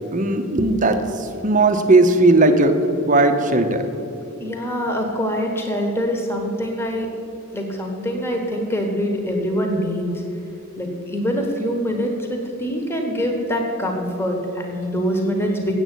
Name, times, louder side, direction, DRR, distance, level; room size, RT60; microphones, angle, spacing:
voice 1, 0.1-2.8 3.1-3.9, right 2 dB, 35° right, 7 dB, 0.7 m, -17 dB
voice 2, 4.4-7.1 7.5-10.2 10.8-15.7, equal, 10° left, 2 dB, 1.2 m, -24 dB
8.0 x 7.7 x 8.3 m, 2.8 s
head